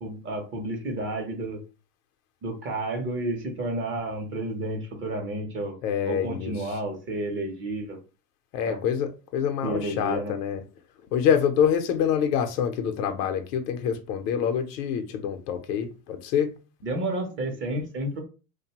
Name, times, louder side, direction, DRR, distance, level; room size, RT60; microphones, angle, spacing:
voice 1, 0.0-1.6 2.4-5.8 6.1-8.0 8.7-8.8 9.6-10.3 16.8-18.2, right 1 dB, 25° right, 0.6 m, -31 dB
voice 2, 5.8-6.6 8.5-10.6 11.1-16.5, left 8 dB, 75° left, 0.7 m, -26 dB
2.5 x 2.2 x 2.8 m
supercardioid pair, 130°, 47 cm